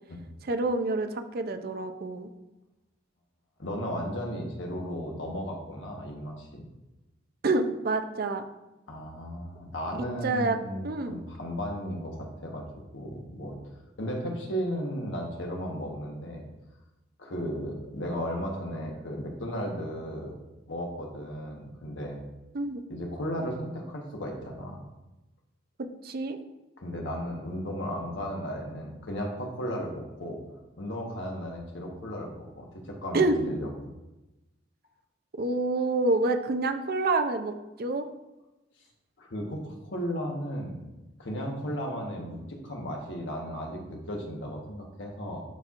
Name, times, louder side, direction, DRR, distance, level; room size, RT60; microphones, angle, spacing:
voice 1, 0.5-2.3 7.4-8.4 10.0-10.6 10.8-11.1 22.5-22.8 26.0-26.4 33.1-33.4 35.4-37.5 37.8-38.0, right 2 dB, 55° right, 8 dB, 0.5 m, -27 dB
voice 2, 3.6-6.7 8.9-12.6 12.9-13.6 14.0-16.4 17.2-20.4 20.7-22.2 22.9-24.8 26.8-30.4 30.8-33.9 39.2-40.9 41.2-45.4, equal, 85° left, 0 dB, 1.3 m, -35 dB
11.0 x 4.4 x 2.5 m, 1.0 s
head